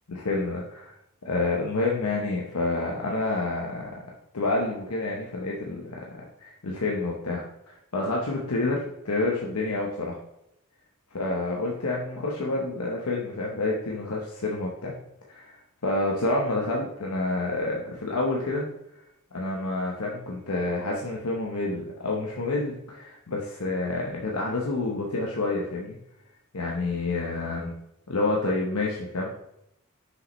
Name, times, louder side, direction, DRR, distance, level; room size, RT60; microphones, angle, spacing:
voice 1, 0.1-0.9 1.2-4.1 4.3-10.2 11.1-14.9 15.3-15.6 15.8-18.6 19.3-26.0 26.5-27.7 28.1-29.4, left 2 dB, 85° left, -2 dB, 0.9 m, -28 dB
6.4 x 5.1 x 3.1 m, 0.80 s
head